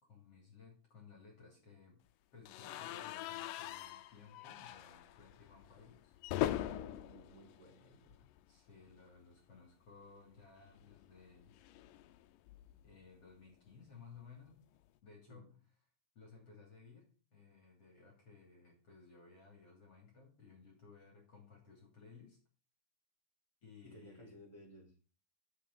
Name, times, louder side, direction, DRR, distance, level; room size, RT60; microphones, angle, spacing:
voice 1, 0.0-2.0 2.3-6.7 8.5-11.5 12.8-14.7 15.0-15.6 16.2-22.4 23.6-24.4, left 5 dB, 40° left, -1 dB, 3.9 m, -59 dB
sound 1, 2.5-8.5 8.8-9.0 9.2-9.3 10.6-12.9, left 13 dB, 75° left, 2.1 m, -43 dB
voice 2, 6.6-8.2 15.3-15.5 23.8-24.9, equal, 5° right, -1 dB, 4.2 m, -57 dB
12.0 x 7.0 x 5.6 m, 0.37 s
omnidirectional pair, 4.5 m